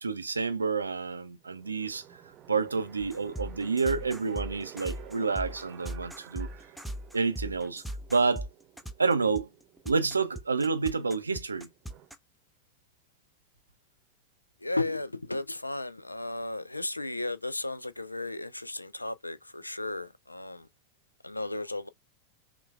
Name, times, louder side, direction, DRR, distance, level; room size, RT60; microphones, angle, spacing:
voice 1, 0.0-2.0 2.5-6.5 7.1-7.8 8.1-8.5 9.0-9.5 9.9-11.7, right 4 dB, 75° right, 0.5 m, -29 dB
sound 1, 1.4-12.1, right 11 dB, 35° right, 0.7 m, -53 dB
sound 2, 3.0-12.1, right 1 dB, ahead, 0.4 m, -39 dB
voice 2, 14.6-20.7 21.2-21.9, left 2 dB, 85° left, 0.3 m, -34 dB
5.7 x 2.3 x 2.4 m
figure-of-eight pair, 90°, 0 cm